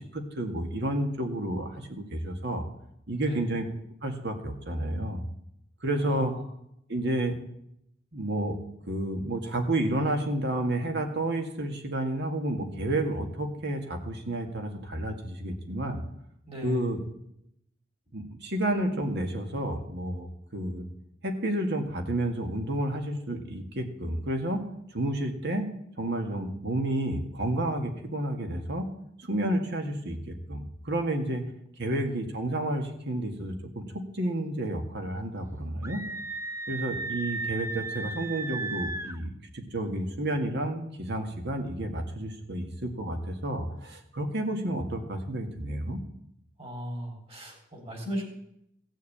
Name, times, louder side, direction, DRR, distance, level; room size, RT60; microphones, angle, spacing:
voice 1, 0.0-2.7 3.1-3.7 4.0-5.2 5.8-6.3 6.9-7.4 8.1-8.6 8.9-16.0 16.6-17.0 18.1-20.9 21.2-24.6 24.9-25.7 26.0-28.9 29.2-31.4 31.8-36.0 36.7-46.0, right 1 dB, 60° right, 5 dB, 1.9 m, -30 dB
voice 2, 6.0-6.4 16.5-16.9 31.9-32.2 46.6-48.2, equal, 30° right, 1 dB, 3.7 m, -37 dB
Screaming, 35.8-39.2, right 3 dB, 15° right, 0.8 m, -35 dB
16.5 x 6.5 x 8.5 m, 0.76 s
head